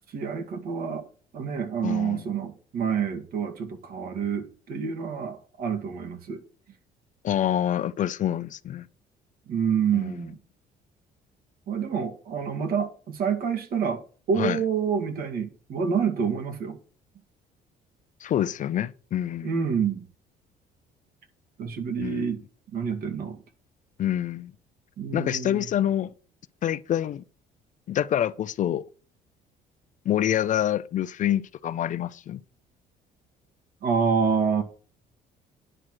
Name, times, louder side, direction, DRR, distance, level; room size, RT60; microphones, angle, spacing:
voice 1, 0.1-1.1 1.3-6.4 9.5-10.4 11.7-16.8 19.4-20.1 21.6-22.4 22.7-23.4 25.0-25.7 33.8-34.6, right 6 dB, 60° right, 2.1 m, -28 dB
voice 2, 1.8-2.2 7.2-8.8 9.9-10.1 14.4-14.6 18.2-19.7 22.0-22.2 24.0-24.5 25.1-26.1 26.6-27.2 27.9-28.8 30.1-32.4, left 11 dB, 50° left, 0.5 m, -26 dB
9.9 x 4.7 x 7.7 m
cardioid pair, 110°, 17 cm